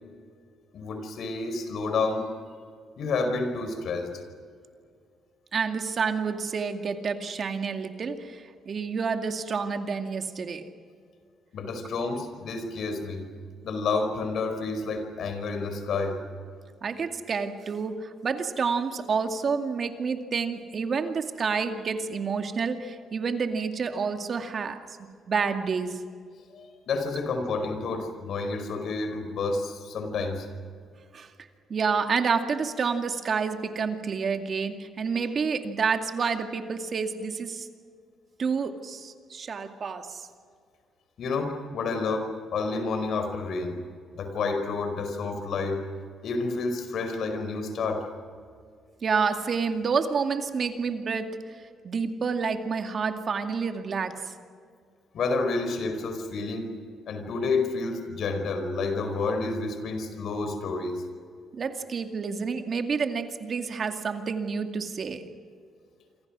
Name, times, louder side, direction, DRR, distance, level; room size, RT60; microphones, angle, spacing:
voice 1, 0.7-2.3 3.0-4.2 11.5-13.3 13.6-16.2 26.5-30.5 41.2-43.8 44.1-45.8 46.2-48.0 55.1-56.7 57.1-61.0, left 3 dB, 65° left, 7 dB, 5.0 m, -29 dB
voice 2, 5.5-10.7 16.8-24.8 25.3-26.0 31.1-31.3 31.7-37.7 38.4-40.3 49.0-51.3 51.8-54.2 61.5-65.3, right 5 dB, 50° right, 6 dB, 2.3 m, -29 dB
28.0 x 26.0 x 6.3 m, 2.2 s
cardioid pair, 90°, 0 cm